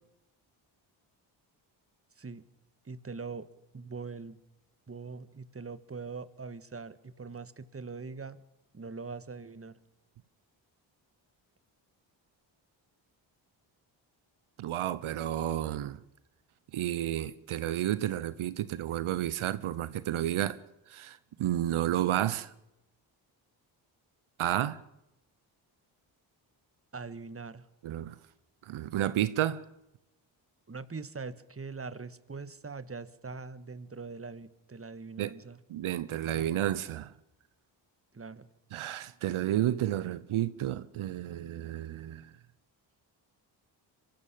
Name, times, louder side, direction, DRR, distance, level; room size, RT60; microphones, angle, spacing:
voice 1, 2.8-3.5 3.7-4.4 4.9-8.4 8.7-9.8 26.9-27.7 30.7-35.6 38.1-38.5, right 4 dB, 30° right, 1.5 m, -42 dB
voice 2, 14.6-16.0 16.7-20.6 20.9-22.5 24.4-24.8 27.8-28.1 28.7-29.6 35.2-35.3 35.7-37.1 38.7-42.2, right 12 dB, 80° right, 0.9 m, -31 dB
24.0 x 13.5 x 8.6 m
supercardioid pair, 50°, 49 cm